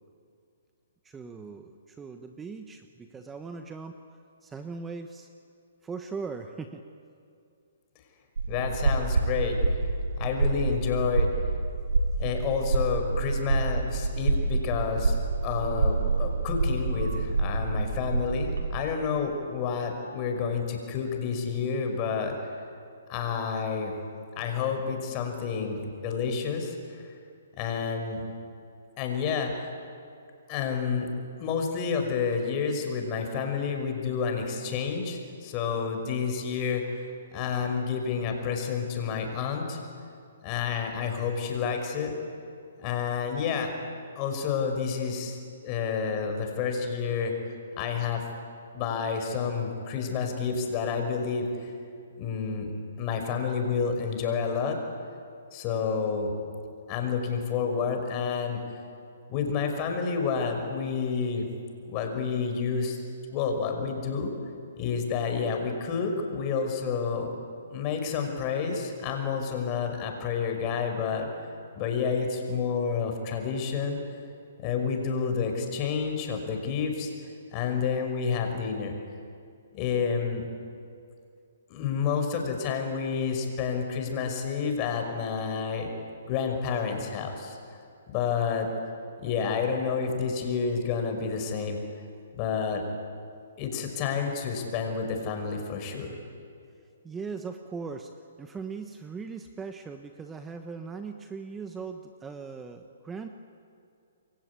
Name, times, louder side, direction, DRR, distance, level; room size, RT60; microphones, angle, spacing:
voice 1, 1.0-4.0 4.4-5.3 5.8-6.8 97.0-98.1 98.4-103.3, right 5 dB, 10° right, 6 dB, 1.2 m, -39 dB
sound 1, 8.4-18.8, right 3 dB, 90° right, 3.8 m, -27 dB
voice 2, 8.5-9.6 10.2-11.3 12.2-15.2 15.4-22.3 23.1-24.0 24.4-26.8 27.6-28.2 29.0-29.7 30.5-31.1 31.4-36.8 37.3-39.8 40.4-42.1 42.8-43.7 44.2-45.4 45.6-47.3 47.8-48.2 48.7-51.7 52.2-52.7 53.0-54.8 55.5-56.3 56.9-58.6 59.3-61.5 61.9-63.0 63.3-64.3 64.8-67.3 67.7-71.3 71.8-74.0 74.6-77.1 77.5-78.9 79.7-80.4 81.7-85.9 86.3-87.6 88.1-88.7 89.2-91.8 92.3-92.8 93.6-96.1, left 6 dB, 30° left, 4 dB, 5.6 m, -29 dB
28.5 x 23.5 x 8.5 m, 2.5 s
hypercardioid pair, 145°, 0 cm